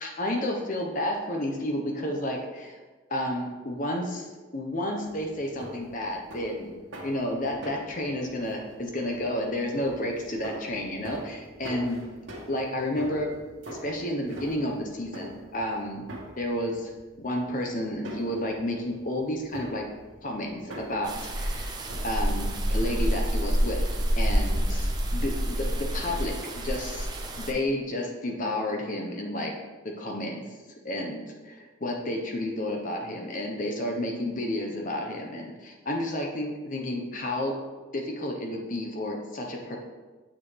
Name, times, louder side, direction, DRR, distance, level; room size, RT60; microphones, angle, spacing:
voice 1, 0.0-2.8 3.1-6.7 7.0-12.1 12.5-13.3 13.7-16.0 16.4-16.9 17.2-19.8 20.2-21.8 22.0-23.9 24.2-27.1 27.4-29.5 29.8-30.5 30.8-37.6 37.9-39.8, left 1 dB, 40° left, 1 dB, 1.1 m, -31 dB
sound 1, 5.0-22.0, equal, 70° right, 1.7 m, -44 dB
sound 2, 21.0-27.5, equal, 20° right, 0.8 m, -27 dB
8.8 x 6.6 x 3.4 m, 1.3 s
head